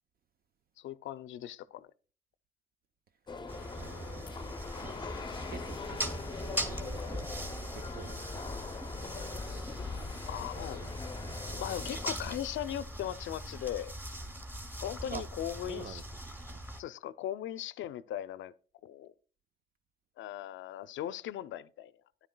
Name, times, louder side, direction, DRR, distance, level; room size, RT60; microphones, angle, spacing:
voice 1, 0.8-1.9 10.3-10.8 11.6-13.9 14.8-16.0 16.8-18.5 18.8-19.1 20.2-21.9, left 11 dB, 75° left, 0.5 m, -38 dB
sound 1, 3.3-12.1, left 4 dB, 20° left, 0.6 m, -42 dB
sound 2, 3.5-16.8, right 1 dB, 10° right, 1.9 m, -41 dB
voice 2, 3.7-7.5 7.7-8.2 10.3-11.0 11.2-11.7 15.1-15.2 15.7-16.0 16.5-16.7, right 7 dB, 50° right, 0.6 m, -49 dB
13.0 x 10.0 x 2.2 m
cardioid pair, 90°, 20 cm